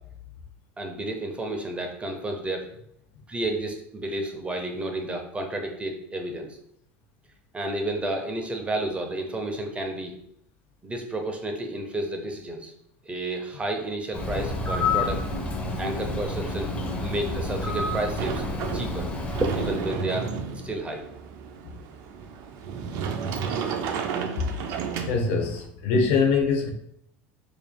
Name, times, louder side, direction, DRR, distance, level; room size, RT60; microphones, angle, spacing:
voice 1, 0.8-2.7 3.3-6.6 7.5-10.1 10.8-12.7 13.0-15.2 15.8-16.7 17.0-19.1 19.4-21.0, right 1 dB, 20° right, 4 dB, 0.7 m, -31 dB
Bird, 14.1-20.0, left 2 dB, 15° left, 1.0 m, -29 dB
Sliding door, 18.2-25.6, right 6 dB, 60° right, 0.5 m, -32 dB
voice 2, 25.1-26.7, left 4 dB, 75° left, 2 dB, 0.8 m, -23 dB
4.9 x 2.6 x 2.3 m, 0.72 s
hypercardioid pair, 90°, 7 cm